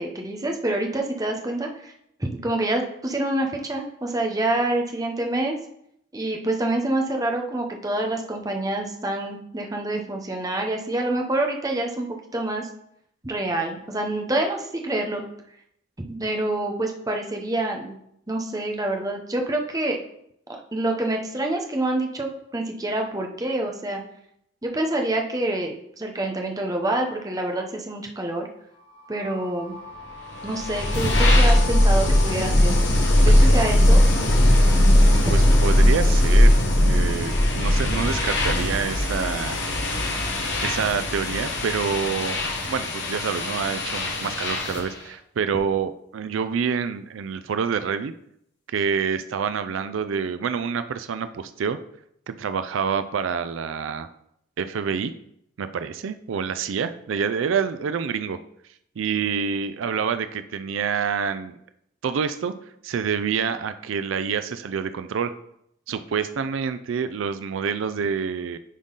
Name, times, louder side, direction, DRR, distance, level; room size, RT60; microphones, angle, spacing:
voice 1, 0.0-1.9 2.2-5.6 6.1-12.7 13.2-15.2 16.0-18.0 18.3-20.0 20.7-22.3 22.5-24.0 24.6-28.5 29.1-29.7 30.4-32.7 33.2-34.0, right 1 dB, 20° right, 2 dB, 0.8 m, -27 dB
sound 1, 28.7-36.6, left 4 dB, 25° left, 1.8 m, -41 dB
sound 2, 30.3-44.9, left 1 dB, 65° left, 1.3 m, -19 dB
voice 2, 34.5-39.6 40.6-42.4 42.7-48.1 48.7-51.8 52.3-54.1 54.6-55.1 55.6-58.4 59.0-61.6 62.0-62.5 62.8-65.3 65.9-68.6, right 6 dB, 85° right, 12 dB, 0.4 m, -27 dB
10.0 x 3.7 x 3.9 m, 0.74 s
head